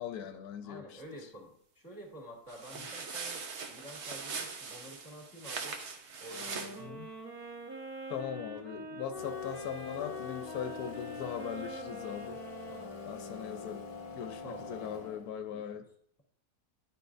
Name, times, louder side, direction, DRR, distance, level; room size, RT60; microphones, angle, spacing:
voice 1, 0.0-0.9 6.8-7.1 8.1-12.4 13.1-13.8 14.1-15.9, left 8 dB, 85° left, 1.1 m, -40 dB
voice 2, 0.6-5.8 6.2-7.0 12.7-12.9 14.2-15.2 15.5-15.8, equal, 15° left, 1.8 m, -50 dB
sound 1, 2.5-6.8, right 5 dB, 55° right, 1.0 m, -41 dB
sound 2, 6.3-14.2, equal, 20° right, 0.9 m, -45 dB
sound 3, 9.1-15.5, left 6 dB, 55° left, 1.1 m, -45 dB
11.0 x 5.2 x 2.5 m
omnidirectional pair, 1.6 m